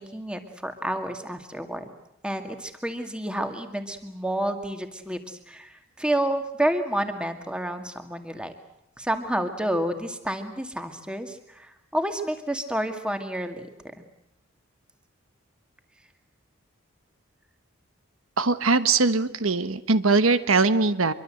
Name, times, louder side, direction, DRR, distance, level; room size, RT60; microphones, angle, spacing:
voice 1, 0.0-1.9 2.2-8.5 9.0-13.7 14.0-14.1, right 1 dB, 5° right, 6 dB, 2.1 m, -29 dB
voice 2, 18.4-21.1, right 3 dB, 80° right, 12 dB, 1.2 m, -21 dB
25.5 x 23.5 x 7.8 m, 0.85 s
head